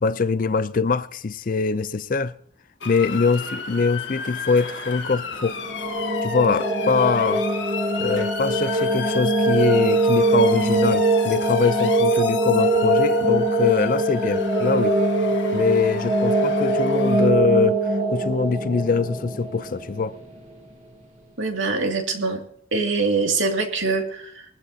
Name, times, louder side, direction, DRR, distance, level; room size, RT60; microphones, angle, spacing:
voice 1, 0.0-2.3 2.8-5.6 6.2-7.5 8.0-15.0 15.5-17.8 18.1-20.2, left 4 dB, 45° left, 0.4 m, -23 dB
Motor vehicle (road) / Siren, 2.8-17.3, left 5 dB, 70° left, 1.5 m, -34 dB
sound 1, 5.4-20.4, right 1 dB, 40° right, 2.5 m, -22 dB
voice 2, 21.4-22.4 22.7-24.4, right 3 dB, 80° right, 2.3 m, -24 dB
21.0 x 15.0 x 2.8 m
head